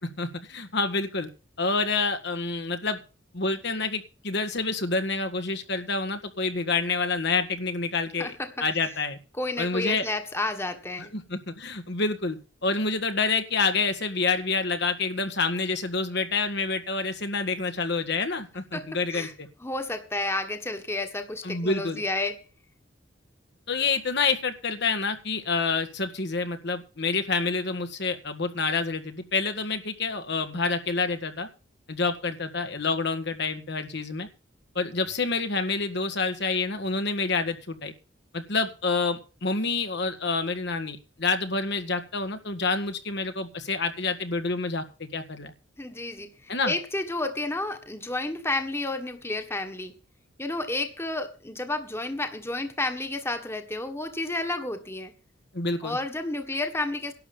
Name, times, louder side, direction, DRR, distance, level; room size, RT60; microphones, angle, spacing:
voice 1, 0.0-1.3 1.6-3.0 3.3-9.2 9.6-10.0 11.1-19.5 21.4-22.0 23.7-31.5 31.9-34.3 34.7-37.9 38.3-45.5 46.5-46.7 55.5-56.0, left 4 dB, 60° left, 7 dB, 1.8 m, -28 dB
voice 2, 8.2-8.6 9.3-11.1 18.7-19.3 19.6-22.4 45.8-49.9 50.4-55.1 55.8-57.1, left 2 dB, 15° left, 7 dB, 1.6 m, -31 dB
11.5 x 7.0 x 8.7 m, 0.33 s
head